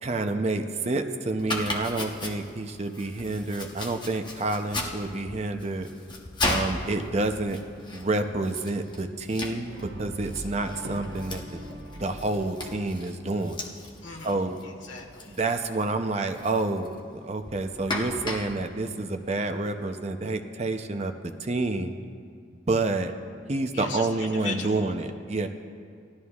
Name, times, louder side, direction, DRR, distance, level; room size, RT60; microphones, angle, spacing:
voice 1, 0.0-5.9 6.5-7.6 7.9-9.7 10.0-11.6 12.0-13.6 14.2-14.5 15.3-17.0 17.2-21.1 21.4-21.9 22.7-23.1 23.5-25.5, right 2 dB, 35° right, 7 dB, 0.5 m, -28 dB
Domestic sounds home sounds, 1.4-19.8, left 2 dB, 25° left, 0.9 m, -37 dB
Brass instrument, 9.7-13.9, equal, 65° right, 0.9 m, -42 dB
voice 2, 14.0-15.4 23.7-24.9, left 4 dB, 75° left, 1 dB, 1.5 m, -38 dB
18.0 x 13.0 x 2.4 m, 2.2 s
head